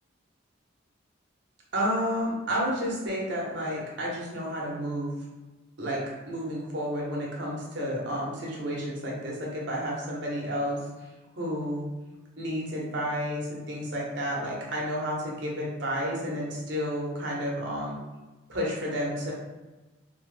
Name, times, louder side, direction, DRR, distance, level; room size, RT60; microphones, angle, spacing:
voice 1, 1.7-5.1 5.8-6.0 6.3-10.8 11.3-11.8 12.4-18.0 18.5-19.3, equal, 60° right, -3 dB, 0.8 m, -31 dB
2.7 x 2.1 x 3.2 m, 1.2 s
head